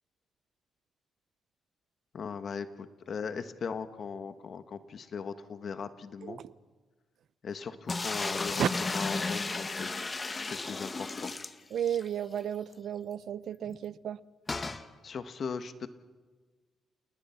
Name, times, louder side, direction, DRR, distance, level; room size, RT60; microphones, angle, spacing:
voice 1, 2.1-6.4 7.4-8.6 8.9-9.9 10.5-11.3 13.6-13.8 15.0-15.9, left 6 dB, 60° left, 1.5 m, -38 dB
voice 2, 6.2-6.5 8.6-8.7 11.7-14.2, right 9 dB, 70° right, 0.6 m, -33 dB
sound 1, 7.9-12.1 12.4-12.5 12.7-12.8 14.5-14.8, left 3 dB, 30° left, 1.3 m, -34 dB
29.0 x 19.0 x 5.9 m
cardioid pair, 65°, 0 cm